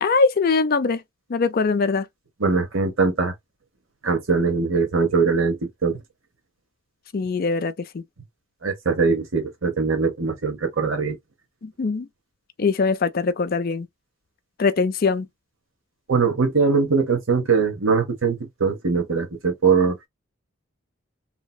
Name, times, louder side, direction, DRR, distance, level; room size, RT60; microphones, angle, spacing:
voice 1, 0.0-1.0 1.3-2.1 7.1-8.0 11.6-12.1 12.6-13.9 14.6-15.3, left 4 dB, 45° left, 0.4 m, -22 dB
voice 2, 2.4-3.3 4.0-6.0 8.6-11.2 16.1-20.0, right 4 dB, 70° right, 0.9 m, -21 dB
3.2 x 2.8 x 2.2 m
head